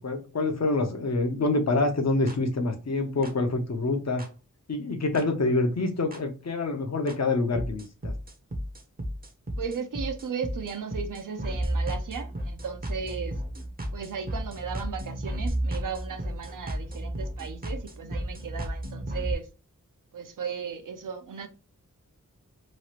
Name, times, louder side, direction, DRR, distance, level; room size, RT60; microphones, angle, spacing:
voice 1, 0.0-4.2 4.7-8.1, left 2 dB, 55° left, 0.7 m, -26 dB
sound 1, 2.3-2.4 3.2-3.3 4.2-4.3 5.2-5.3 6.1-6.2 7.1-7.2 7.6-19.4, right 1 dB, 30° right, 0.6 m, -33 dB
voice 2, 9.6-13.3 13.9-19.5 20.1-21.5, right 6 dB, 75° right, 0.6 m, -36 dB
3.0 x 2.4 x 2.9 m
wide cardioid pair, 95°, 32 cm